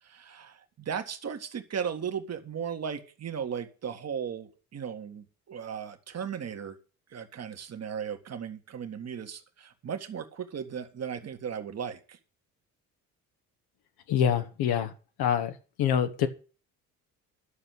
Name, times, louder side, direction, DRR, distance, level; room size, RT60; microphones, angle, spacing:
voice 1, 0.0-6.8 7.1-12.2, right 7 dB, 35° right, 6 dB, 1.7 m, -36 dB
voice 2, 14.1-14.9 15.2-16.3, left 9 dB, 50° left, 8 dB, 1.3 m, -26 dB
11.5 x 6.7 x 6.5 m, 0.37 s
figure-of-eight pair, 50°, 47 cm